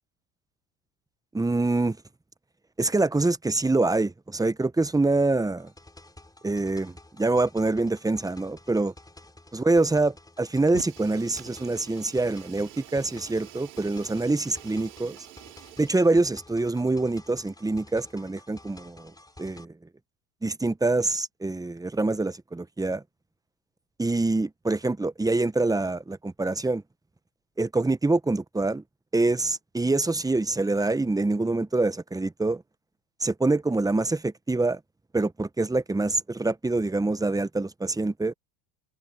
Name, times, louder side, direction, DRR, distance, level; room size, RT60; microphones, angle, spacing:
voice 1, 1.3-2.0 2.8-5.7 6.4-8.9 9.5-15.2 15.8-19.1 19.4-19.7 20.4-23.0 24.0-26.8 27.6-28.8 29.1-32.6 33.2-34.8 35.1-38.3, right 2 dB, 5° right, 1.0 m, -25 dB
sound 1, 5.6-19.6, left 2 dB, 10° left, 3.7 m, -51 dB
Fire, 10.6-16.3, right 18 dB, 85° right, 5.9 m, -47 dB
supercardioid pair, 90°, 48 cm